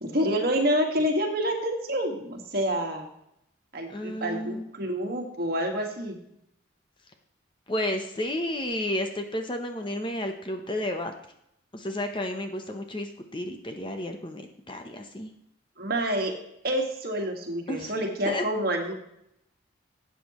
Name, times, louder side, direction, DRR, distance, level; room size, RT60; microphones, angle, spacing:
voice 1, 0.0-3.1 3.7-6.2 15.8-16.3 16.6-18.9, equal, 50° right, 2 dB, 1.8 m, -28 dB
voice 2, 3.9-4.6 7.7-11.1 11.7-14.4 14.7-15.3 17.7-17.9 18.3-18.4, left 1 dB, 25° left, 5 dB, 0.8 m, -31 dB
12.5 x 8.5 x 3.1 m, 0.76 s
head